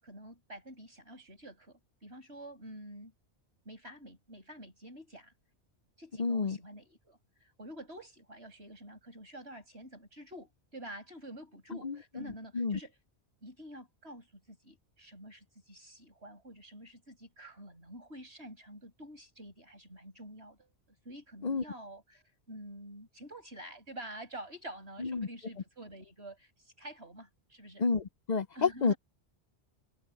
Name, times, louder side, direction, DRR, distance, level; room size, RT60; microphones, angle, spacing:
voice 1, 0.0-3.1 3.6-5.3 6.0-13.0 13.4-20.7 21.0-27.9 28.5-29.0, right 1 dB, 65° right, 7.7 m, -48 dB
voice 2, 6.2-6.6 11.8-12.3 12.5-12.8 21.4-21.6 25.0-25.3 27.8-28.9, left 4 dB, 45° left, 0.7 m, -30 dB
open air
omnidirectional pair, 1.2 m